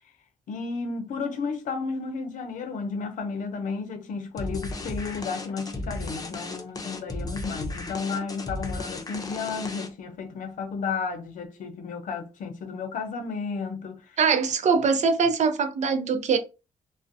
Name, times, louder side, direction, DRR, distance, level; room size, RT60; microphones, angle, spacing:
voice 1, 0.5-14.2, left 5 dB, 85° left, 0.5 m, -33 dB
sound 1, 4.4-10.1, left 2 dB, 30° left, 0.6 m, -35 dB
voice 2, 14.2-16.4, right 5 dB, 65° right, 0.5 m, -22 dB
2.5 x 2.0 x 2.6 m
cardioid pair, 70°, 13 cm